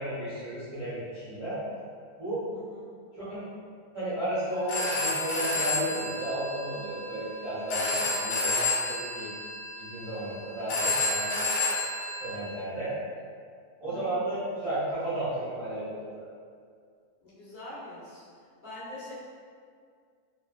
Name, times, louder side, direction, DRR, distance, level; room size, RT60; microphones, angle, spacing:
voice 1, 0.0-1.6 2.2-2.4 3.3-3.4 3.9-9.3 9.8-11.4 12.2-12.9 13.8-16.2, right 1 dB, 35° right, -14 dB, 0.6 m, -33 dB
voice 2, 2.5-2.9 13.9-14.2 17.2-18.2 18.6-19.1, left 1 dB, 45° left, -11 dB, 0.7 m, -44 dB
Telephone, 4.5-12.4, left 2 dB, 80° left, 1.0 m, -30 dB
2.4 x 2.3 x 2.3 m, 2.1 s
omnidirectional pair, 1.5 m